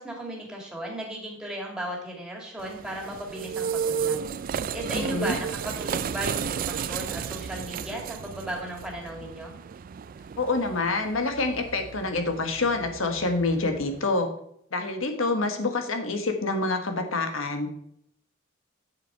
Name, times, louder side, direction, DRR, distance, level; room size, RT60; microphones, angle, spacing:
voice 1, 0.0-4.3 4.7-9.5, right 1 dB, 5° right, -1 dB, 2.4 m, -36 dB
sound 1, 2.6-14.0, right 7 dB, 45° right, 0.3 m, -33 dB
voice 2, 4.9-5.4 10.4-14.3 14.7-17.7, left 3 dB, 90° left, 5 dB, 1.5 m, -27 dB
7.7 x 7.1 x 4.7 m, 0.70 s
head